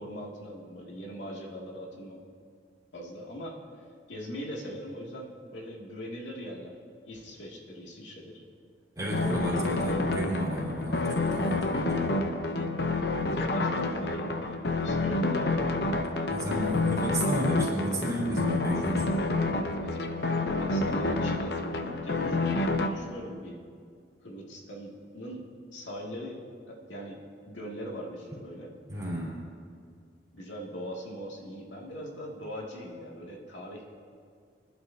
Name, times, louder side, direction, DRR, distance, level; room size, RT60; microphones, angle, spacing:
voice 1, 0.0-2.2 2.9-3.6 4.1-6.8 7.0-8.4 13.4-15.6 19.8-20.0 20.4-23.6 24.2-25.5 25.7-26.4 26.7-28.8 30.3-33.9, equal, 85° left, -2 dB, 2.4 m, -41 dB
voice 2, 9.0-12.0 16.3-19.2 28.9-29.4, right 1 dB, 20° right, -7 dB, 3.8 m, -32 dB
sound 1, 9.1-22.9, left 2 dB, 60° left, 0.8 m, -28 dB
25.0 x 11.5 x 2.8 m, 2.2 s
head